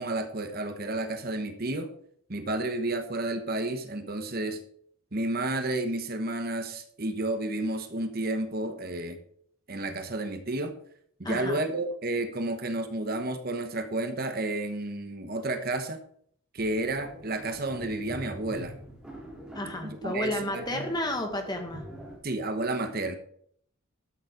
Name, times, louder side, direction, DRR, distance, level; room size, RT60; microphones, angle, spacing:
voice 1, 0.0-1.9 2.3-4.6 5.1-9.2 9.7-10.8 11.2-16.0 16.5-18.7 19.8-20.9 22.2-23.2, right 2 dB, 45° right, 7 dB, 1.1 m, -31 dB
voice 2, 11.2-11.6 19.5-21.8, left 1 dB, 20° left, 4 dB, 1.7 m, -32 dB
sound 1, 16.6-22.2, equal, 5° right, 3.5 m, -44 dB
12.5 x 7.2 x 5.2 m, 0.62 s
head